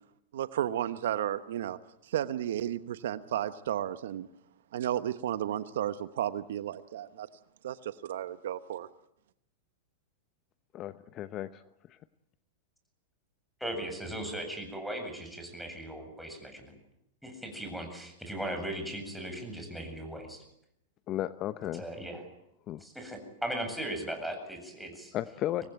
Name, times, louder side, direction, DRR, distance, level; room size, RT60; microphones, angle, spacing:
voice 1, 0.3-4.3 4.7-7.3 7.6-8.9, right 11 dB, 75° right, 13 dB, 1.1 m, -33 dB
voice 2, 10.7-11.6 11.9-12.0 21.1-21.9 22.7-22.8 25.1-25.6, left 13 dB, 40° left, 13 dB, 0.9 m, -34 dB
voice 3, 13.6-16.7 17.2-20.4 21.8-22.2 22.8-25.1, right 1 dB, ahead, 3 dB, 7.9 m, -38 dB
26.0 x 19.0 x 9.3 m, 0.79 s
hypercardioid pair, 110°, 0 cm